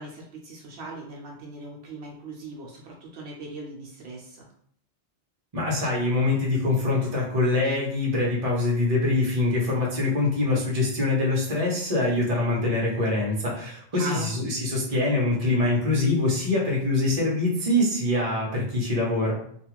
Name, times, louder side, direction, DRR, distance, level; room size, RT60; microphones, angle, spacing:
voice 1, 0.0-4.5 13.9-14.3, right 2 dB, 75° right, -1 dB, 0.9 m, -39 dB
voice 2, 5.5-19.4, left 2 dB, 35° right, -3 dB, 0.8 m, -24 dB
2.4 x 2.4 x 3.0 m, 0.63 s
omnidirectional pair, 1.2 m